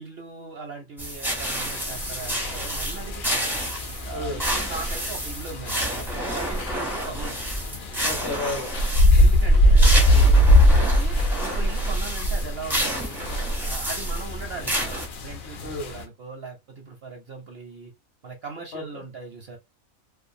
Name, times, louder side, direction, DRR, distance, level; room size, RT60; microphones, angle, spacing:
voice 1, 0.0-3.5 4.0-7.3 9.1-10.4 10.7-13.2 13.6-17.9 18.2-19.6, right 4 dB, 65° right, 0.6 m, -39 dB
sound 1, 1.0-15.1, right 1 dB, 5° right, 0.3 m, -30 dB
sound 2, 1.6-16.0, equal, 80° left, 0.4 m, -22 dB
voice 2, 4.1-4.4 8.0-8.7 15.6-15.9 18.7-19.0, left 2 dB, 55° left, 0.9 m, -32 dB
2.5 x 2.2 x 2.6 m
omnidirectional pair, 1.5 m